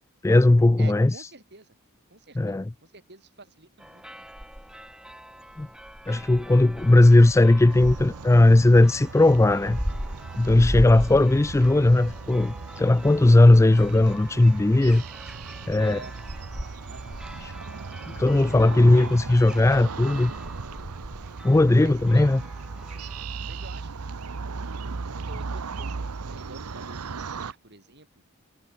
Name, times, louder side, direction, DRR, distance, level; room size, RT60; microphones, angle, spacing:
voice 1, 0.2-1.1 2.4-2.7 5.6-5.7 6.1-9.8 10.4-15.0 15.7-16.0 18.1-20.3 21.4-22.4, left 2 dB, 15° left, 0.3 m, -18 dB
voice 2, 0.8-1.8 2.1-4.3 15.8-16.3 16.9-17.3 18.5-19.2 21.7-22.3 23.4-24.4 24.8-28.1, right 2 dB, 50° right, 5.7 m, -47 dB
sound 1, 3.8-23.3, equal, 5° right, 3.6 m, -38 dB
sound 2, 7.7-27.5, right 4 dB, 85° right, 0.8 m, -37 dB
head